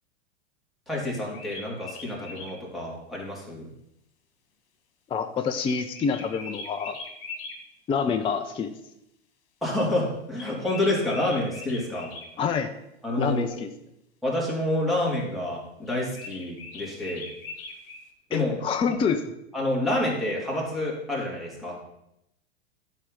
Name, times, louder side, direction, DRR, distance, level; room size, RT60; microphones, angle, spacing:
voice 1, 0.9-3.7 9.6-12.1 13.0-13.6 14.2-17.3 18.3-18.6 18.9-19.0 19.5-21.8, left 1 dB, ahead, -5 dB, 3.1 m, -28 dB
sound 1, 1.1-2.5 5.6-7.6 10.4-12.3 15.9-18.0, left 3 dB, 55° left, 1.8 m, -41 dB
voice 2, 5.1-7.0 7.9-8.7 12.4-12.7 13.2-13.7 18.3-19.2, left 6 dB, 15° left, 7 dB, 0.5 m, -27 dB
11.5 x 4.7 x 5.4 m, 0.82 s
hypercardioid pair, 100°, 34 cm